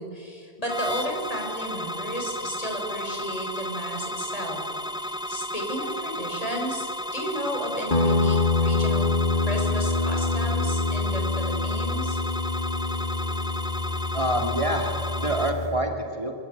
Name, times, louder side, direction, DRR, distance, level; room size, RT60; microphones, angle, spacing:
voice 1, 0.0-4.6 5.0-9.1 9.3-12.2, equal, 35° left, 1 dB, 6.2 m, -33 dB
sound 1, 0.7-15.5, equal, 5° right, 1.1 m, -33 dB
Guitar, 7.9-15.7, left 3 dB, 55° left, 3.1 m, -26 dB
voice 2, 14.1-16.3, right 1 dB, 30° right, 2 dB, 2.7 m, -27 dB
25.0 x 23.5 x 9.3 m, 2.2 s
omnidirectional pair, 1.0 m